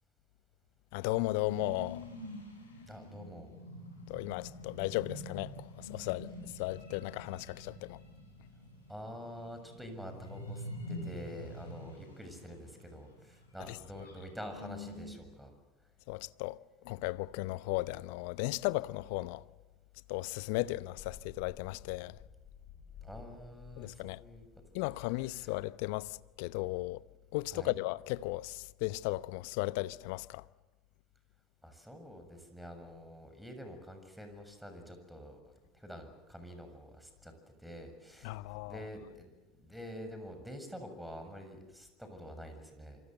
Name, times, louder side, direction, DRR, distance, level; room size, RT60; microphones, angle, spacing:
voice 1, 0.9-2.1 4.1-8.0 13.7-13.8 16.1-16.6 16.8-19.4 20.1-22.2 23.8-24.2 24.7-27.0 27.3-30.4 38.2-38.8, left 20 dB, 60° left, 0.8 m, -36 dB
sound 1, 1.3-15.2, left 1 dB, 90° left, 7.1 m, -47 dB
voice 2, 2.9-3.5 8.9-15.5 23.0-24.5 25.3-25.5 27.5-27.7 31.6-37.3 37.6-38.4 38.7-39.3 39.6-43.0, equal, ahead, 7.0 m, -47 dB
sound 2, 21.0-26.4, left 6 dB, 40° left, 6.2 m, -55 dB
26.5 x 26.0 x 7.9 m
figure-of-eight pair, 75°, 0 cm